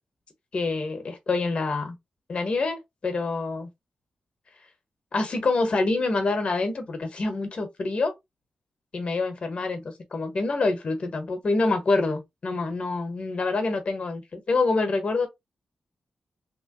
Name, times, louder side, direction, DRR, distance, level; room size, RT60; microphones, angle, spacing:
voice 1, 0.5-2.0 2.3-3.7 5.1-8.1 8.9-9.8 10.1-15.3, left 3 dB, 45° left, 1.1 m, -26 dB
3.1 x 3.1 x 3.0 m
wide cardioid pair, 155°, 3 cm